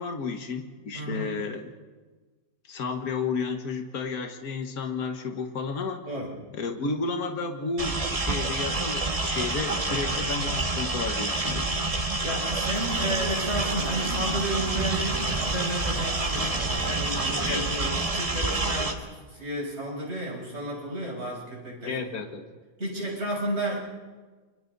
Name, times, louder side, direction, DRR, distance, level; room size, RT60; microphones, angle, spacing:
voice 1, 0.0-1.8 2.7-6.1 6.5-11.7 17.4-17.6 21.8-22.5, left 4 dB, 70° left, 5 dB, 2.0 m, -32 dB
voice 2, 0.9-1.3 6.1-6.3 11.9-19.0 19.3-22.0 22.8-23.8, right 1 dB, 45° right, -5 dB, 6.7 m, -32 dB
sound 1, 7.8-18.9, right 2 dB, 25° right, 1.4 m, -28 dB
sound 2, 12.7-19.2, right 4 dB, 70° right, 1.8 m, -40 dB
30.0 x 23.5 x 4.0 m, 1.4 s
omnidirectional pair, 1.6 m